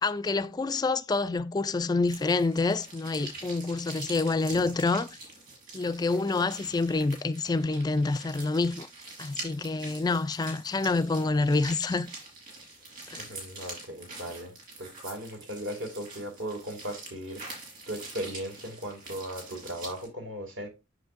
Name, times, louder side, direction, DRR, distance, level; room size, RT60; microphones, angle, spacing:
voice 1, 0.0-5.1 5.7-8.9 9.2-12.1 13.1-13.2, left 3 dB, 20° left, 0.3 m, -27 dB
sound 1, 2.1-20.1, right 3 dB, 45° right, 5.0 m, -45 dB
voice 2, 13.2-14.5 14.8-17.4 17.9-20.7, equal, 65° right, 2.5 m, -37 dB
7.9 x 7.1 x 2.5 m
head